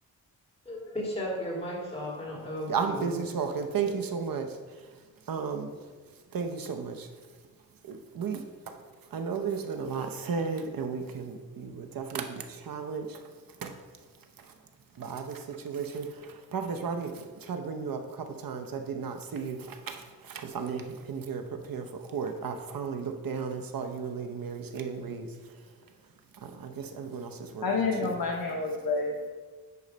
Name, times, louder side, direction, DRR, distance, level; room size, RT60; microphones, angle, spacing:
voice 1, 0.7-3.2, left 1 dB, 15° left, -5 dB, 2.2 m, -35 dB
voice 2, 2.7-4.6 5.3-5.7 6.3-7.1 7.8-8.8 9.1-13.2 13.6-13.8 15.0-25.3 26.4-27.6 28.0-28.2, right 5 dB, 70° right, 5 dB, 0.8 m, -34 dB
voice 3, 26.9-29.3, left 3 dB, 80° left, -1 dB, 0.9 m, -30 dB
9.5 x 3.2 x 5.2 m, 1.4 s
wide cardioid pair, 120°, 35 cm